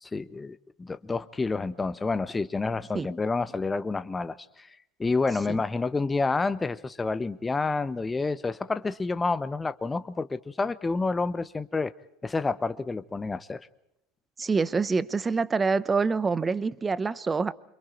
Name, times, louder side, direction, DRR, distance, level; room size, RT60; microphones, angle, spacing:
voice 1, 0.0-4.7 5.0-11.9 12.2-13.7, left 3 dB, 15° left, 0.9 m, -29 dB
voice 2, 14.4-17.5, right 4 dB, 20° right, 1.0 m, -26 dB
28.5 x 26.0 x 4.5 m
figure-of-eight pair, 80°, 0 cm